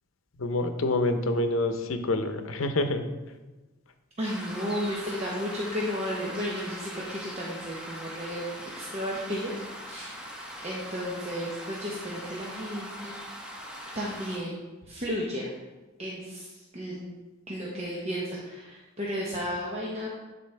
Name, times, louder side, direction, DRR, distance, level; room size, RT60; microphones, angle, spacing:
voice 1, 0.4-3.1, left 2 dB, 85° left, 8 dB, 0.7 m, -27 dB
sound 1, 4.2-14.4, equal, 5° right, 1.0 m, -41 dB
voice 2, 4.2-8.4 8.8-10.2 10.6-13.2 13.9-14.6 14.9-15.5 16.0-17.2 17.5-20.1, equal, 35° right, -4 dB, 0.9 m, -33 dB
10.5 x 4.2 x 3.3 m, 1.2 s
head